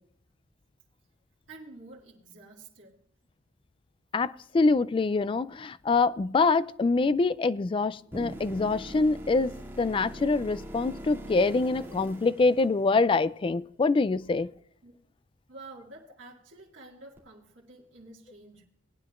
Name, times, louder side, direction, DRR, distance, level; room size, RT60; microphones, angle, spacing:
voice 1, 1.5-3.0 14.8-15.0 15.5-18.6, right 2 dB, 90° right, 2.0 m, -49 dB
voice 2, 4.1-9.5 9.8-14.5, left 3 dB, 25° left, 0.3 m, -25 dB
sound 1, 8.1-13.2 17.2-17.3, equal, 10° right, 2.4 m, -42 dB
19.5 x 9.6 x 2.4 m
head